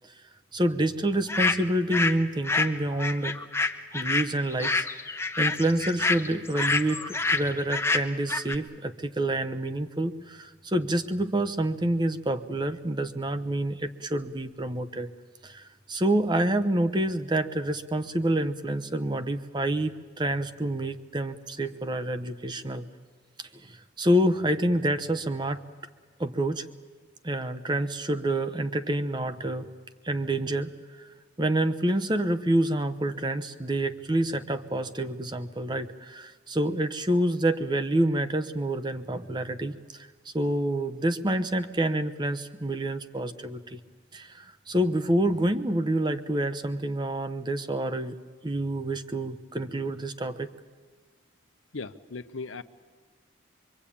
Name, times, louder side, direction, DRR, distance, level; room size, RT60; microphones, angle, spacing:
voice 1, 0.5-3.4 3.9-4.9 5.4-15.1 15.4-22.8 23.4-25.6 26.2-26.6 27.2-29.7 30.0-30.7 31.0-31.1 31.4-40.1 40.3-43.8 44.1-48.1 48.4-50.5, right 1 dB, 20° right, 10 dB, 0.8 m, -28 dB
sound 1, 1.3-2.2 2.4-8.6, left 3 dB, 15° left, 0.9 m, -27 dB
voice 2, 51.7-52.6, left 4 dB, 90° left, 10 dB, 0.9 m, -37 dB
24.5 x 24.0 x 8.6 m, 1.5 s
head